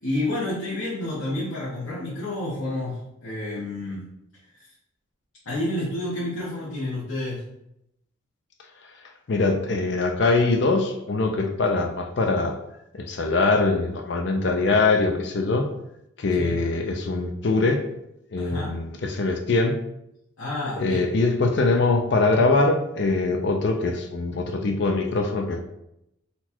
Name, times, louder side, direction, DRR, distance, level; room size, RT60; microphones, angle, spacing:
voice 1, 0.0-4.1 5.4-7.4 16.4-16.6 18.4-18.7 20.4-21.0, left 1 dB, 85° left, -8 dB, 1.1 m, -29 dB
voice 2, 9.3-12.6 12.9-15.7 16.2-17.9 18.3-19.7 20.8-25.6, left 3 dB, 55° left, 5 dB, 0.5 m, -22 dB
4.1 x 2.3 x 4.3 m, 0.82 s
head